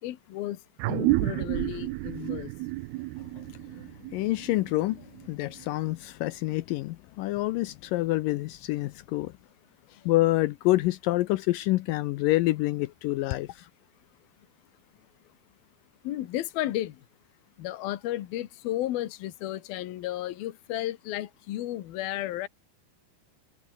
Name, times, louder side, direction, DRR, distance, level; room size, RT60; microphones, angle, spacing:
voice 1, 0.0-2.5 9.8-10.0 16.0-17.0 17.6-22.5, left 14 dB, 70° left, 3.1 m, -33 dB
sound 1, 0.8-5.7, right 19 dB, 80° right, 2.6 m, -31 dB
voice 2, 4.1-9.3 10.1-13.7, left 18 dB, 85° left, 2.0 m, -27 dB
omnidirectional pair, 4.6 m